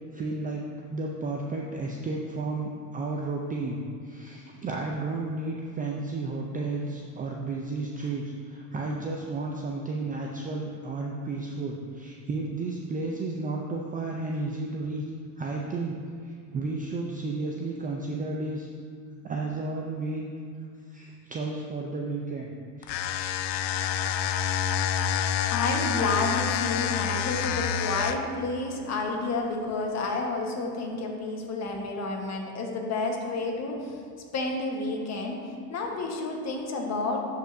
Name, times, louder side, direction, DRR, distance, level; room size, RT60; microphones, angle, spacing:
voice 1, 0.1-15.0 15.4-16.0 16.2-18.7 19.2-20.3 20.9-23.1 23.3-23.4 25.1-25.3, right 3 dB, 20° right, 0 dB, 0.4 m, -33 dB
sound 1, 22.8-28.4, left 8 dB, 85° left, 0.5 m, -28 dB
voice 2, 25.5-34.0 34.3-35.4 35.7-37.2, left 3 dB, 35° left, 1 dB, 1.3 m, -30 dB
12.5 x 5.5 x 2.6 m, 2.2 s
supercardioid pair, 105°, 48 cm